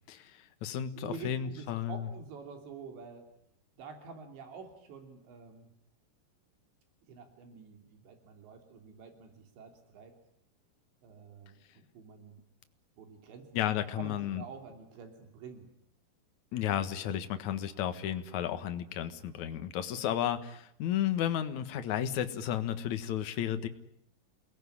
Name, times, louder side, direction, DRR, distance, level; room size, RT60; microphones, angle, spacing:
voice 1, 0.1-2.1 13.5-14.4 16.5-23.7, left 10 dB, 55° left, 9 dB, 2.3 m, -33 dB
voice 2, 0.7-3.3 3.8-5.7 7.1-10.1 11.0-12.4 13.0-13.5 14.0-15.7 17.0-17.2 20.0-20.1, right 5 dB, 90° right, 5 dB, 5.3 m, -48 dB
28.5 x 20.0 x 10.0 m, 0.70 s
omnidirectional pair, 5.0 m